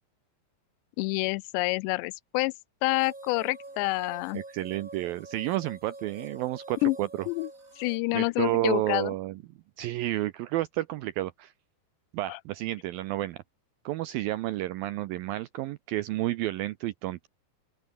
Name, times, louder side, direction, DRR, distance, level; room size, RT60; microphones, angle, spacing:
voice 1, 1.0-2.5 2.8-4.4 6.8-7.0 7.3-7.5 7.8-9.1 12.3-12.4, left 23 dB, 85° left, 2.8 m, -27 dB
sound 1, 2.9-8.0, right 2 dB, 20° right, 4.7 m, -46 dB
voice 2, 4.3-7.3 8.1-9.4 9.8-11.5 12.1-13.4 13.9-17.3, right 16 dB, 80° right, 2.1 m, -31 dB
open air
omnidirectional pair, 4.9 m